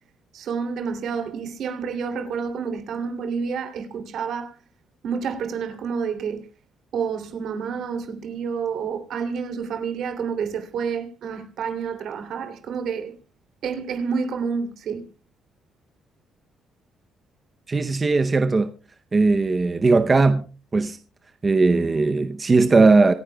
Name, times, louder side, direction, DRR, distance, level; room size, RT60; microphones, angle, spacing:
voice 1, 0.3-4.6 5.0-6.5 6.9-13.1 13.6-15.1, right 6 dB, 65° right, 2.9 m, -29 dB
voice 2, 17.7-18.7 19.1-20.4 20.7-21.0 21.4-23.1, right 3 dB, 25° right, 0.7 m, -18 dB
26.5 x 10.0 x 2.3 m
cardioid pair, 145°, 0 cm